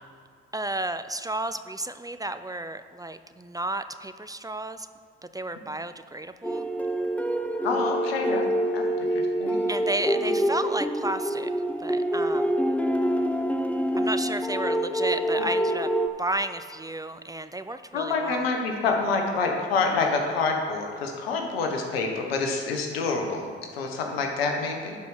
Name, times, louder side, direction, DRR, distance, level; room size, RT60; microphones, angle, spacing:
voice 1, 0.5-4.9 5.3-6.7 9.7-11.5 11.8-12.5 14.0-15.9 16.2-18.4, right 2 dB, 10° right, 11 dB, 0.5 m, -32 dB
sound 1, 6.4-16.1, equal, 5° left, 0.9 m, -26 dB
voice 2, 7.6-8.4 8.7-9.6 10.1-10.3 17.9-25.0, left 4 dB, 90° left, 3 dB, 1.2 m, -27 dB
11.0 x 4.9 x 5.6 m, 2.1 s
hypercardioid pair, 55°, 29 cm